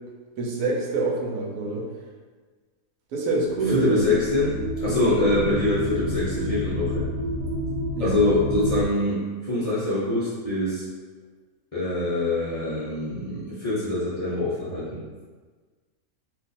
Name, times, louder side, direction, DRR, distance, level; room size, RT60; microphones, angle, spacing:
voice 1, 0.4-1.9 3.1-4.0 4.5-4.6 8.0-8.2, right 3 dB, 85° right, -1 dB, 1.2 m, -26 dB
sound 1, 3.5-8.9, equal, 70° right, 1.4 m, -29 dB
voice 2, 3.7-4.5 4.8-7.0 8.0-10.8 11.7-15.0, left 2 dB, 35° left, -10 dB, 0.6 m, -24 dB
2.5 x 2.4 x 4.0 m, 1.4 s
omnidirectional pair, 1.6 m